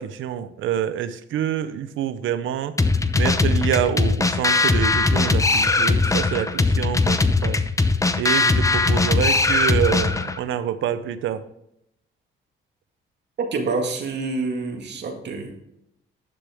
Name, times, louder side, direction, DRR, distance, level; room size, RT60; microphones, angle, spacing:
voice 1, 0.0-2.7 3.1-7.6 8.1-11.4, right 10 dB, 80° right, 13 dB, 0.8 m, -26 dB
sound 1, 2.8-10.4, left 3 dB, 15° left, 0.7 m, -20 dB
voice 2, 13.4-15.5, right 3 dB, 60° right, 3 dB, 1.9 m, -27 dB
11.5 x 6.7 x 3.6 m, 0.79 s
cardioid pair, 90°, 20 cm